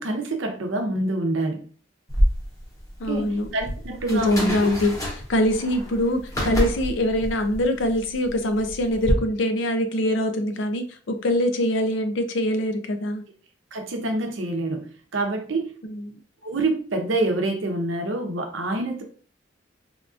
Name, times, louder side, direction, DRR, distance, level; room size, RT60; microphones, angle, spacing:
voice 1, 0.0-1.7 3.1-4.5 13.7-15.7 16.4-19.0, right 2 dB, 90° right, 3 dB, 0.7 m, -26 dB
sound 1, 2.1-9.1, equal, 20° left, 0.7 m, -28 dB
voice 2, 3.0-3.5 4.1-5.0 5.3-13.2 15.9-16.2, left 1 dB, 70° left, 7 dB, 0.5 m, -23 dB
3.5 x 2.4 x 2.4 m, 0.41 s
head